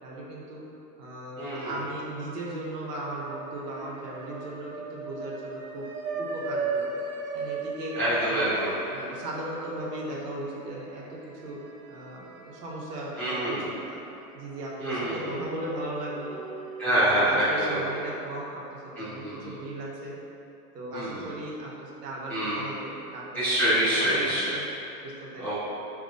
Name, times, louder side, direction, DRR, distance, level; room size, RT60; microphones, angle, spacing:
voice 1, 0.0-0.6 1.0-5.9 6.2-7.0 7.3-8.0 8.3-8.5 8.9-11.6 11.9-14.0 14.3-16.4 16.9-20.2 20.7-23.4 23.8-24.7 25.0-25.5, right 1 dB, 85° right, -5 dB, 1.1 m, -37 dB
voice 2, 1.4-1.7 7.9-8.8 13.2-13.7 14.8-15.2 16.8-18.0 18.9-19.5 20.9-21.3 22.3-22.6 23.3-24.5 25.4-25.5, right 1 dB, 5° left, -18 dB, 0.5 m, -26 dB
sound 1, 1.5-2.3 2.6-13.0 13.4-13.5 14.6-18.0, right 4 dB, 60° right, 0.6 m, -38 dB
5.1 x 3.0 x 2.5 m, 2.9 s
supercardioid pair, 155°, 47 cm